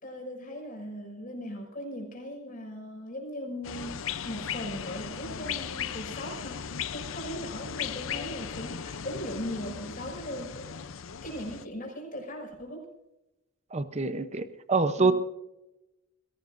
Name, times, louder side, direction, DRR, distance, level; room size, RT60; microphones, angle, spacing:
voice 1, 0.0-10.8 11.2-12.9 14.9-15.1, equal, 40° left, 0 dB, 6.2 m, -39 dB
sound 1, 3.6-11.7, left 8 dB, 70° left, 0.6 m, -37 dB
voice 2, 13.7-15.1, right 3 dB, 35° right, 10 dB, 0.7 m, -26 dB
21.5 x 17.5 x 2.6 m, 0.93 s
head